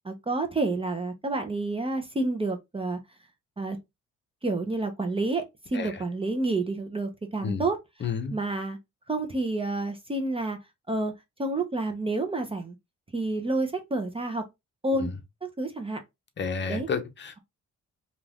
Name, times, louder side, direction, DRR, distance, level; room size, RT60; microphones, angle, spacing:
voice 1, 0.0-3.0 3.6-3.8 4.4-7.8 8.3-8.8 9.1-10.6 10.9-11.1 11.4-12.7 13.1-14.4 14.8-15.1 15.4-16.0 16.7-16.9, right 2 dB, 20° right, 0.6 m, -29 dB
voice 2, 8.0-8.3 15.0-15.1 16.4-17.4, left 5 dB, 40° left, 0.7 m, -30 dB
2.5 x 2.4 x 3.3 m
cardioid pair, 90°, 30 cm